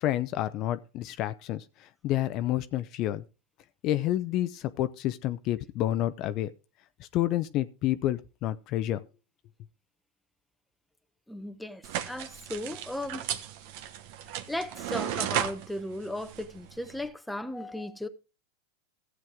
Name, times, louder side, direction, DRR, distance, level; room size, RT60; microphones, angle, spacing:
voice 1, 0.0-3.2 3.8-6.5 7.0-9.0, left 13 dB, 45° left, 0.6 m, -29 dB
voice 2, 11.3-13.3 14.3-18.1, left 1 dB, 5° left, 0.8 m, -36 dB
sound 1, 11.8-17.1, right 10 dB, 60° right, 1.1 m, -35 dB
14.5 x 7.5 x 3.6 m
hypercardioid pair, 120°, 0 cm